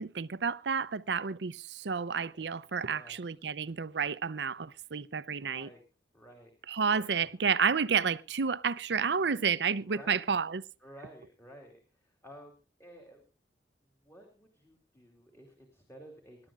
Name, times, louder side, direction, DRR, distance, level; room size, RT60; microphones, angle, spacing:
voice 1, 0.0-5.7 6.7-10.6, right 6 dB, 75° right, 0.6 m, -30 dB
voice 2, 2.9-3.2 5.4-5.8 6.1-6.5 6.9-7.3 9.8-10.2 10.8-13.2 14.0-16.4, equal, 15° left, 3.0 m, -53 dB
25.5 x 11.5 x 2.4 m
head